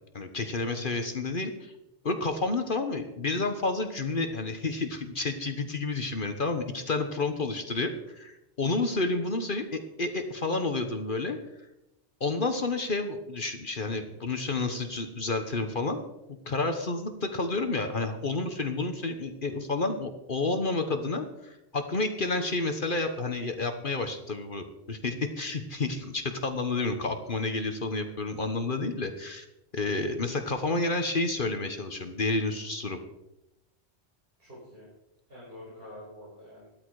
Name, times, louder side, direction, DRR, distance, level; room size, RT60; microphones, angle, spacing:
voice 1, 0.1-1.7 2.0-11.4 12.2-16.0 16.5-29.4 29.7-33.0, left 3 dB, 50° left, 6 dB, 1.4 m, -30 dB
voice 2, 34.4-34.9 35.3-36.7, left 1 dB, 60° right, -7 dB, 5.8 m, -47 dB
15.5 x 13.0 x 4.8 m, 0.90 s
omnidirectional pair, 1.1 m